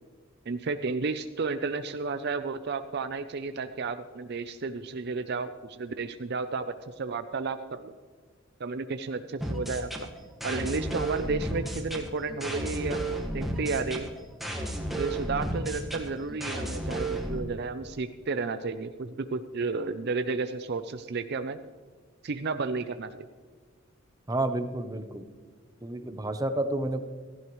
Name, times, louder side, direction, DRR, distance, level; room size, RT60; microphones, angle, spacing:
voice 1, 0.5-7.9 8.6-9.9 10.4-14.1 15.0-21.6 22.2-23.3, right 4 dB, 55° right, 10 dB, 0.5 m, -32 dB
sound 1, 9.4-17.4, right 1 dB, ahead, 1.5 m, -33 dB
voice 2, 24.3-25.2 25.8-27.0, right 2 dB, 20° right, 9 dB, 0.8 m, -30 dB
16.0 x 15.0 x 3.1 m, 1.5 s
head